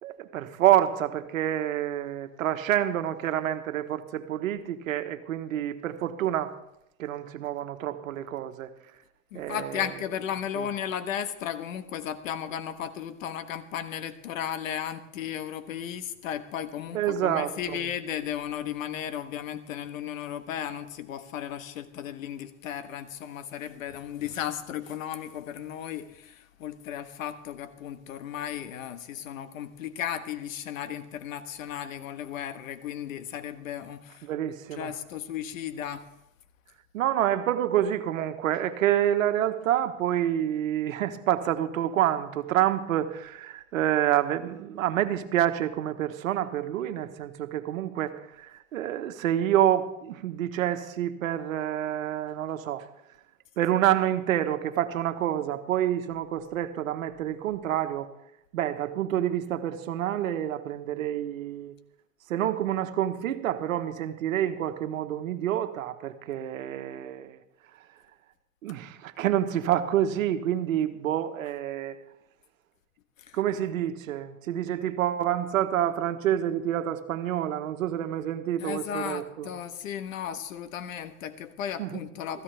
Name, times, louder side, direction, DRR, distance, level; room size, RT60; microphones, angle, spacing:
voice 1, 0.0-6.5 7.0-8.7 9.3-9.9 10.6-10.7 16.9-17.5 34.2-34.9 36.9-52.8 53.6-58.1 58.5-61.7 62.3-67.4 68.6-72.0 73.3-79.5 81.8-82.0, right 11 dB, 85° right, 1.4 m, -28 dB
voice 2, 9.3-34.3 34.7-36.1 71.4-71.5 73.2-73.4 78.6-82.4, left 9 dB, 85° left, 1.4 m, -35 dB
16.5 x 15.0 x 3.4 m
hypercardioid pair, 115°, 39 cm